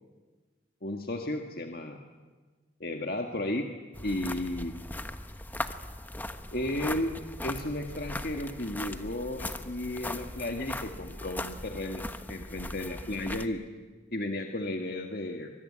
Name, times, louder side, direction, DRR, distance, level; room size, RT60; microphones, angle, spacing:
voice 1, 0.8-2.0 2.8-3.7 4.0-4.8 6.5-13.6 14.1-15.5, left 1 dB, 55° left, 3 dB, 1.8 m, -34 dB
sound 1, 3.9-13.5, left 1 dB, 10° left, 1.0 m, -39 dB
24.5 x 22.5 x 9.9 m, 1.3 s
head